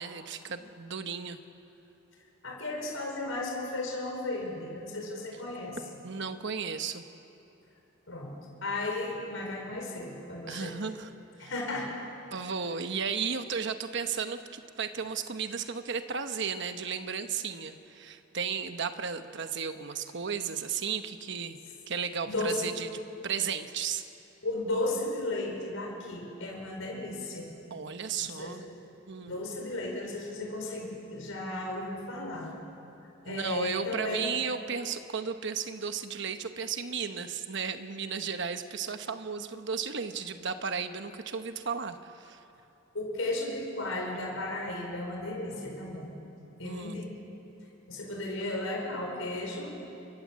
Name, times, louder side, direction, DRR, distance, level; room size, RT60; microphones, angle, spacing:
voice 1, 0.0-1.4 6.0-7.0 10.5-11.1 11.4-11.5 12.3-21.6 21.9-22.9 23.2-24.0 27.7-28.6 29.1-29.4 33.3-42.4 46.6-47.0, right 6 dB, 60° right, 8 dB, 1.1 m, -34 dB
voice 2, 2.4-5.8 8.1-8.3 8.6-10.7 11.4-12.0 22.3-22.6 24.4-27.5 28.3-28.6 29.3-32.5 33.2-34.3 42.9-46.1 46.6-47.1 47.9-49.7, left 2 dB, 80° left, 0 dB, 5.2 m, -34 dB
29.5 x 24.5 x 7.5 m, 2.8 s
head